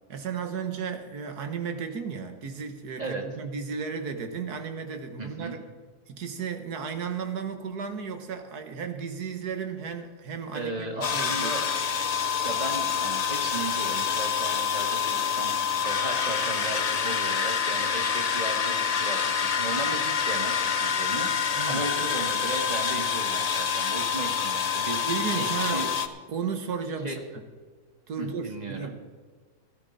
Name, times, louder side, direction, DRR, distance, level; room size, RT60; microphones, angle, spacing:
voice 1, 0.1-5.6 6.1-11.6 21.6-21.9 25.0-25.9 26.3-27.4 28.1-29.0, right 6 dB, 85° right, 7 dB, 1.8 m, -34 dB
voice 2, 5.2-5.6 10.5-11.7 12.4-25.9 27.0-27.2 28.2-28.9, right 2 dB, 25° right, 2 dB, 1.8 m, -36 dB
sound 1, 11.0-26.1, left 7 dB, 40° left, 0.5 m, -27 dB
16.0 x 13.0 x 4.1 m, 1.5 s
omnidirectional pair, 1.6 m